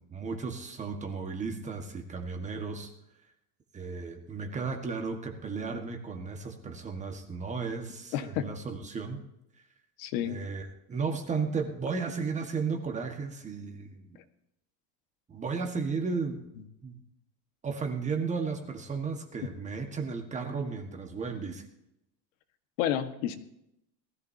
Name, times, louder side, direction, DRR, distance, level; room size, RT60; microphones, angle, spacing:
voice 1, 0.0-2.9 3.7-9.2 10.2-14.2 15.3-16.4 16.8-17.0 17.6-21.7, right 5 dB, 20° right, 4 dB, 1.6 m, -34 dB
voice 2, 8.1-8.5 10.0-10.4 22.8-23.4, left 11 dB, 85° left, 8 dB, 1.6 m, -30 dB
19.0 x 14.5 x 2.8 m, 0.83 s
cardioid pair, 165°, 38 cm